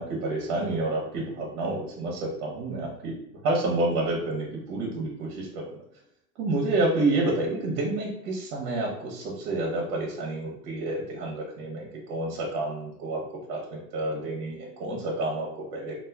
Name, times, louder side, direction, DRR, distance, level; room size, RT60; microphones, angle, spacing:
voice 1, 0.0-3.1 3.4-5.8 6.4-13.2 13.5-16.0, right 2 dB, 45° right, -2 dB, 1.0 m, -29 dB
3.1 x 2.5 x 2.3 m, 0.77 s
hypercardioid pair, 110°, 47 cm